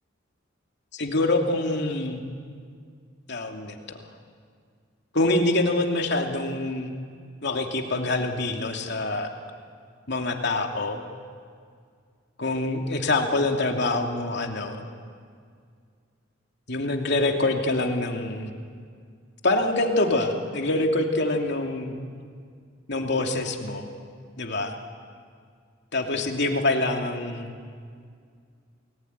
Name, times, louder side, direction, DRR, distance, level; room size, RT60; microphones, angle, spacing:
voice 1, 0.9-2.2 3.3-4.0 5.1-6.9 7.4-9.3 10.1-11.0 12.4-14.8 16.7-18.5 19.4-22.0 22.9-23.9 24.4-24.8 25.9-27.5, left 2 dB, 60° left, 3 dB, 2.8 m, -25 dB
29.5 x 20.5 x 9.6 m, 2.1 s
head